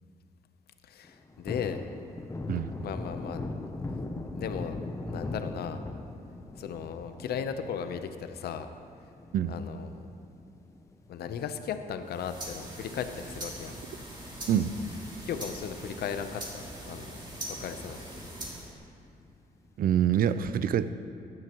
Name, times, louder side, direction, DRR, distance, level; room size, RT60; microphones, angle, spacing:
voice 1, 0.8-1.9 2.8-3.4 4.3-4.8 5.1-5.8 6.6-8.7 9.5-10.0 11.1-13.8 15.2-18.3, left 7 dB, 75° left, 9 dB, 0.7 m, -36 dB
Thunder, 1.0-11.8 12.2-12.3 12.6-14.1 14.4-14.6 14.9-15.7 16.1-16.2 16.6-16.7 19.0-19.6, left 2 dB, 20° left, 0.7 m, -40 dB
sound 1, 12.0-18.8, right 1 dB, 25° right, 2.6 m, -42 dB
voice 2, 19.8-20.9, right 9 dB, 65° right, 14 dB, 0.5 m, -26 dB
15.5 x 11.0 x 3.0 m, 2.6 s
cardioid pair, 95°, 16 cm